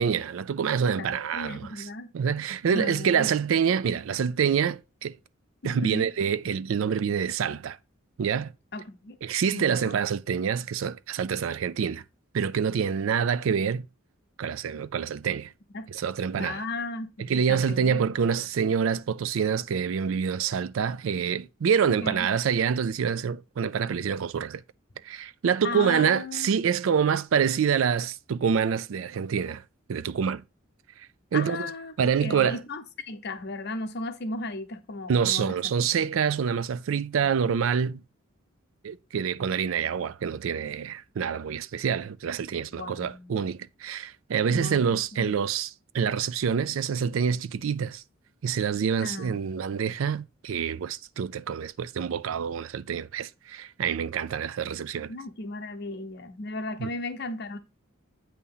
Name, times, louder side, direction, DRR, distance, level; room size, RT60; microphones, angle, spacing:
voice 1, 0.0-1.9 2.1-5.1 5.6-7.8 8.2-8.5 9.2-12.0 12.3-13.8 14.4-15.5 15.9-16.7 17.2-24.6 25.0-29.6 29.9-30.4 31.3-31.7 32.0-32.6 35.1-38.0 38.8-48.0 48.4-55.1 56.8-56.9, right 7 dB, 75° right, 0.4 m, -26 dB
voice 2, 1.0-2.1 2.7-3.3 5.6-6.1 8.7-9.1 9.5-9.9 15.7-15.9 16.4-18.1 22.0-22.3 25.6-26.5 31.3-35.6 42.7-43.4 44.5-45.3 49.0-49.8 55.1-57.6, left 2 dB, 55° left, 0.8 m, -36 dB
8.4 x 2.9 x 5.4 m
head